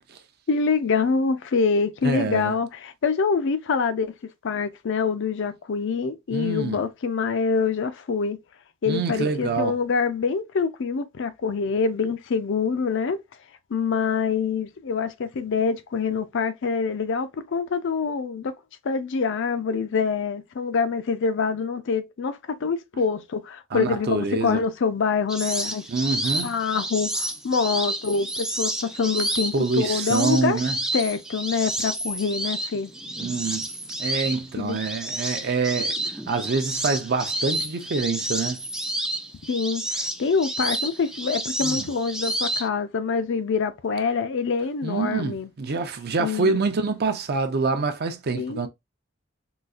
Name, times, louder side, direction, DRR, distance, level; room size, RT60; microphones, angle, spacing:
voice 1, 0.5-4.1 4.4-8.4 8.8-13.2 13.7-18.5 18.8-25.8 26.4-30.6 30.9-32.9 34.6-34.8 39.5-45.5 46.2-46.6 48.3-48.6, left 5 dB, 65° left, 0.5 m, -25 dB
voice 2, 2.0-2.5 6.3-6.8 8.9-9.8 23.7-24.6 25.9-26.5 29.5-30.8 33.2-33.7 34.0-35.9 36.3-38.6 41.6-41.9 44.8-48.7, right 4 dB, 50° right, 0.5 m, -26 dB
sound 1, 25.3-42.7, right 1 dB, 5° right, 0.3 m, -30 dB
3.9 x 2.4 x 2.4 m
head